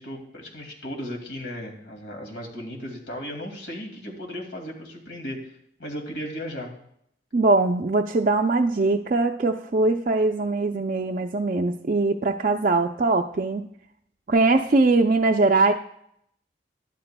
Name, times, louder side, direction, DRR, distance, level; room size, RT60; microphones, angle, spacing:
voice 1, 0.0-5.4 5.8-6.7, equal, 85° left, 1 dB, 2.3 m, -35 dB
voice 2, 7.3-13.7 14.3-15.7, right 3 dB, 45° right, 2 dB, 0.4 m, -21 dB
12.0 x 11.5 x 2.2 m, 0.72 s
head